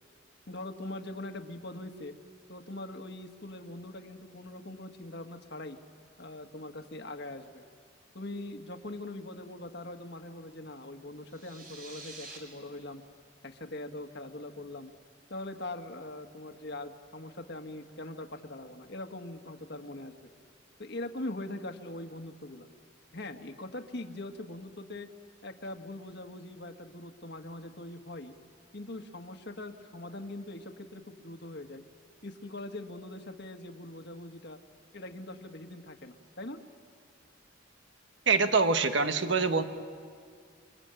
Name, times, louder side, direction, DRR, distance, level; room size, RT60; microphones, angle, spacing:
voice 1, 0.5-2.1 2.5-5.8 6.2-7.6 8.1-13.0 13.4-14.9 15.3-20.3 20.8-22.7 23.1-25.1 25.4-28.3 28.7-31.8 32.2-34.6 34.9-36.6, left 1 dB, 55° left, 6 dB, 1.5 m, -42 dB
sound 1, 11.2-12.4, right 3 dB, 45° right, 4.5 m, -47 dB
voice 2, 38.3-39.6, right 4 dB, 65° right, 8 dB, 1.4 m, -25 dB
28.0 x 24.0 x 9.0 m, 2.1 s
head